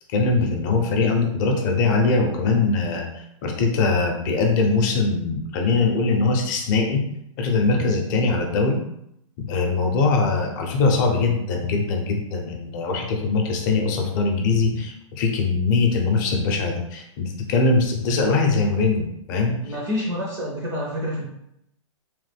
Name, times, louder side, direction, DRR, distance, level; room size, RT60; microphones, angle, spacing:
voice 1, 0.1-7.0 7.4-8.8 9.4-19.6, left 3 dB, 35° left, 2 dB, 0.6 m, -22 dB
voice 2, 19.6-21.3, left 1 dB, 20° right, -3 dB, 0.5 m, -28 dB
3.1 x 2.1 x 3.3 m, 0.78 s
hypercardioid pair, 150°, 17 cm